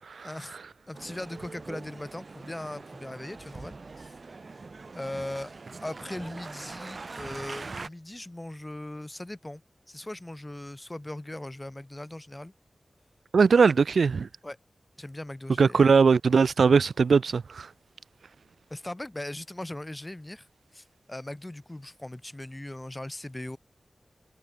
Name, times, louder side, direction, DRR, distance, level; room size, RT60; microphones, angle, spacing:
voice 1, 0.2-0.6 0.9-4.1 4.9-5.5 5.8-9.6 9.9-12.5 14.4-14.6 15.0-15.9 18.7-20.5 20.7-23.6, left 1 dB, 15° left, 1.5 m, -39 dB
Male speech man speaking, 0.9-7.9, right 3 dB, 50° right, 3.7 m, -43 dB
voice 2, 13.3-14.3 15.6-17.7, right 5 dB, 85° right, 0.4 m, -20 dB
wide cardioid pair, 105°, 0 cm